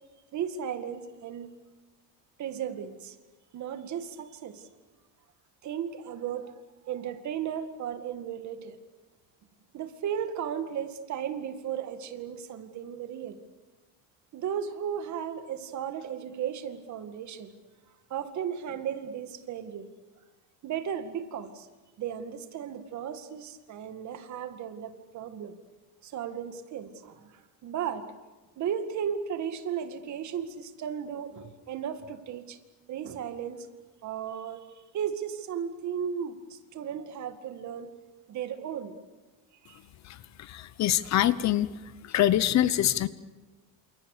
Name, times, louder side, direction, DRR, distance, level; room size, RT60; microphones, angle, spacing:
voice 1, 0.3-1.5 2.4-3.2 3.5-4.6 5.6-6.5 6.9-8.8 9.7-13.4 14.3-17.5 18.1-19.9 20.6-21.7 22.0-25.6 26.0-28.1 28.6-32.6 32.9-33.7 34.0-34.7 34.9-37.9 38.3-38.9 39.6-39.8, right 8 dB, 45° right, 9 dB, 2.2 m, -35 dB
voice 2, 40.0-41.7 42.0-43.1, left 12 dB, 45° left, 16 dB, 0.9 m, -25 dB
29.0 x 28.0 x 6.7 m, 1.2 s
cardioid pair, 165°, 39 cm